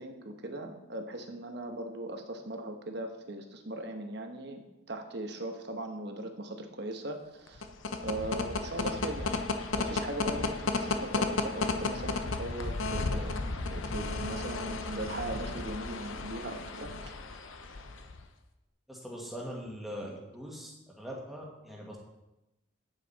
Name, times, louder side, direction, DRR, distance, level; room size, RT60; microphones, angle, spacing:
voice 1, 0.0-4.6 4.9-7.7 8.0-9.4 9.7-17.1, right 1 dB, 55° right, 5 dB, 1.2 m, -39 dB
sound 1, 7.5-18.2, left 3 dB, 75° left, 0.8 m, -33 dB
voice 2, 18.9-20.7 21.0-22.0, equal, ahead, -3 dB, 1.8 m, -41 dB
9.4 x 9.1 x 4.2 m, 0.95 s
head